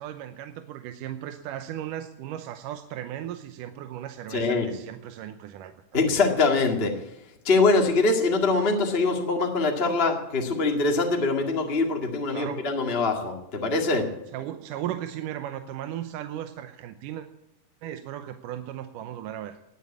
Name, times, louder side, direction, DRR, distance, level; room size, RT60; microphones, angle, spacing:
voice 1, 0.0-5.7 12.3-12.6 14.3-17.3 17.8-19.6, right 11 dB, 90° right, 8 dB, 2.4 m, -36 dB
voice 2, 4.3-4.7 5.9-7.0 7.4-14.1, left 3 dB, 20° left, 2 dB, 1.7 m, -23 dB
20.0 x 8.3 x 8.5 m, 0.88 s
omnidirectional pair, 3.7 m